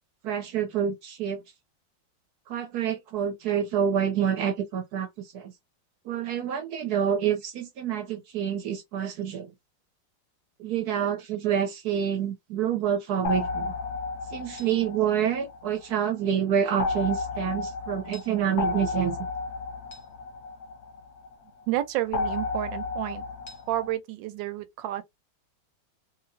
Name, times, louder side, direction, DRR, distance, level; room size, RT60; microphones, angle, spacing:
voice 1, 0.2-1.4 2.5-5.1 5.3-5.5 6.0-9.5 10.6-13.7 14.3-19.3, right 8 dB, 70° right, 1.1 m, -27 dB
sound 1, 13.2-16.0 16.8-21.3 22.1-23.9, left 4 dB, 50° left, 0.9 m, -33 dB
voice 2, 21.7-23.2 23.7-25.0, right 14 dB, 85° right, 1.3 m, -30 dB
2.8 x 2.7 x 2.6 m
omnidirectional pair, 2.0 m